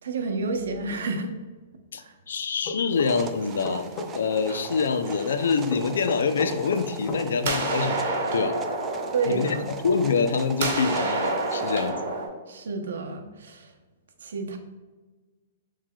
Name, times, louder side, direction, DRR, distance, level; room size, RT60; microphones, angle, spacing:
voice 1, 0.0-1.3 2.0-2.1 3.4-3.5 9.1-9.7 12.5-13.7 14.2-14.6, right 4 dB, 85° right, 5 dB, 0.7 m, -30 dB
voice 2, 1.9-3.9 4.1-8.6 9.3-12.0, left 5 dB, 90° left, 10 dB, 0.4 m, -26 dB
sound 1, 2.6-4.1 5.7-7.2, left 3 dB, 35° left, 0.6 m, -33 dB
sound 2, 2.9-11.9, right 6 dB, 20° right, 0.3 m, -41 dB
sound 3, 3.1-4.0 4.5-6.0 6.7-7.1 7.4-10.3 10.6-12.3, right 3 dB, 55° right, 1.1 m, -30 dB
7.1 x 3.2 x 2.3 m, 1.3 s
hypercardioid pair, 155°, 0 cm